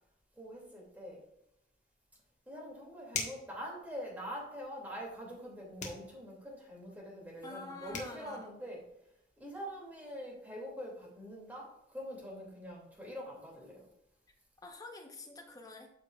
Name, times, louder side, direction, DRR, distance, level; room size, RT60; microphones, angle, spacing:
voice 1, 0.4-1.2 2.5-8.8 9.4-13.9, equal, 10° right, -3 dB, 2.6 m, -44 dB
sound 1, 3.1-3.5 5.8-6.1 7.6-7.7 7.9-8.2, left 4 dB, 40° left, 1.5 m, -38 dB
voice 2, 7.4-8.5 14.6-15.9, left 2 dB, 20° left, 2 dB, 1.0 m, -47 dB
12.5 x 5.3 x 2.5 m, 0.79 s
head